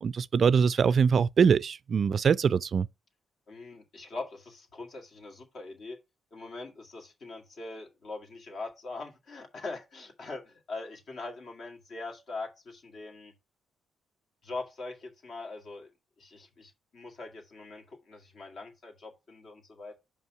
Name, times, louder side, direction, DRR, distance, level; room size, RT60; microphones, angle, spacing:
voice 1, 0.0-2.9, right 6 dB, 55° right, 0.3 m, -23 dB
voice 2, 3.5-6.0 6.3-13.3 14.4-15.9 16.2-20.0, left 3 dB, 60° left, 2.1 m, -42 dB
5.4 x 5.1 x 4.8 m
hypercardioid pair, 45°, 0 cm